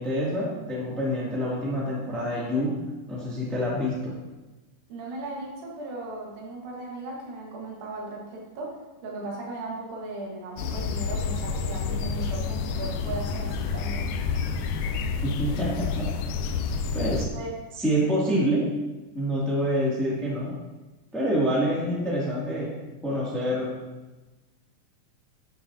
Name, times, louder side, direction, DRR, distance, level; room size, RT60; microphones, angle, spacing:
voice 1, 0.0-2.8 3.1-4.2 15.2-16.1 16.9-17.3 17.8-18.8 19.1-20.6 21.1-22.8 23.0-23.7, equal, ahead, -6 dB, 1.3 m, -27 dB
voice 2, 4.9-8.7 9.0-14.4 17.0-17.5, right 2 dB, 70° right, -2 dB, 3.3 m, -37 dB
sound 1, 10.6-17.3, left 5 dB, 80° left, 2.1 m, -29 dB
13.0 x 6.5 x 2.8 m, 1.1 s
omnidirectional pair, 4.3 m